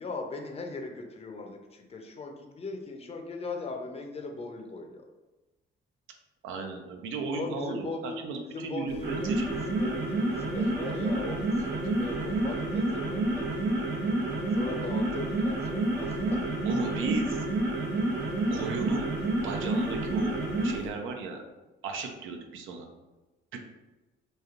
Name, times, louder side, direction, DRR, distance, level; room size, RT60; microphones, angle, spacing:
voice 1, 0.0-5.0 7.3-13.9 14.5-16.4, left 3 dB, 30° left, 3 dB, 0.5 m, -39 dB
voice 2, 6.4-9.5 16.6-17.4 18.5-19.1 19.4-20.4 20.6-21.4 21.8-22.9 23.5-23.6, right 4 dB, 85° right, 3 dB, 0.5 m, -35 dB
sound 1, 8.9-20.9, right 2 dB, 60° right, 0.8 m, -29 dB
3.2 x 2.6 x 2.4 m, 1.1 s
cardioid pair, 90°, 20 cm